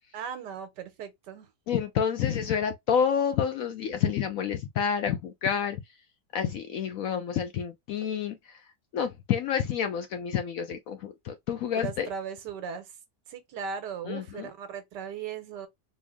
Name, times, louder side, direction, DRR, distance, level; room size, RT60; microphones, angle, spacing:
voice 1, 0.1-1.5 11.7-12.9 13.3-15.7, right 7 dB, 80° right, 1.4 m, -37 dB
voice 2, 1.7-5.8 6.3-8.4 8.9-12.1 14.1-14.5, left 8 dB, 70° left, 0.8 m, -28 dB
4.4 x 2.0 x 3.5 m
omnidirectional pair, 1.8 m